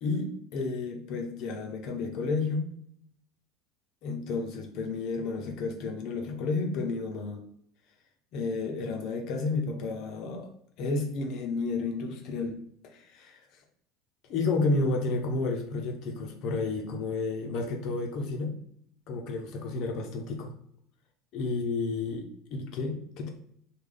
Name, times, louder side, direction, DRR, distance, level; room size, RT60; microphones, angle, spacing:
voice 1, 0.0-2.7 4.0-7.4 8.3-10.5 10.8-13.4 14.3-18.5 19.1-20.5 21.3-23.3, left 3 dB, 45° left, 3 dB, 0.6 m, -31 dB
3.3 x 2.3 x 3.7 m, 0.68 s
cardioid pair, 170°, 0 cm